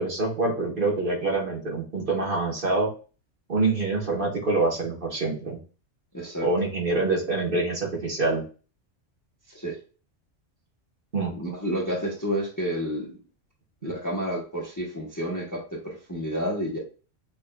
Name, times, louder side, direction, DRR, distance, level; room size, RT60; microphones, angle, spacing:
voice 1, 0.0-2.9 3.5-5.6 6.4-8.4 11.1-11.3 13.8-13.9, right 3 dB, 45° right, -2 dB, 1.2 m, -26 dB
voice 2, 6.1-6.5 9.5-9.8 11.3-13.2 13.8-16.8, equal, 20° left, -2 dB, 0.7 m, -30 dB
5.8 x 2.5 x 2.2 m, 0.36 s
omnidirectional pair, 1.3 m